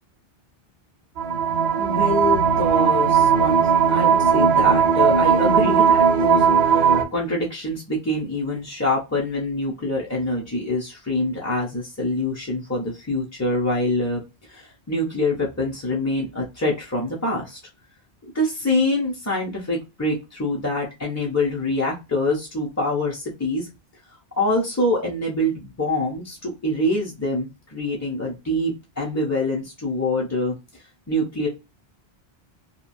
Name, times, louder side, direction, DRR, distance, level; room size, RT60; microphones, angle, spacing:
sound 1, 1.2-7.0, right 7 dB, 80° right, 0.8 m, -18 dB
voice 1, 1.7-3.6 3.9-17.6 18.3-23.7 24.4-30.5 31.1-31.5, left 1 dB, 20° left, -4 dB, 0.5 m, -25 dB
2.8 x 2.3 x 2.5 m, 0.26 s
omnidirectional pair, 1.0 m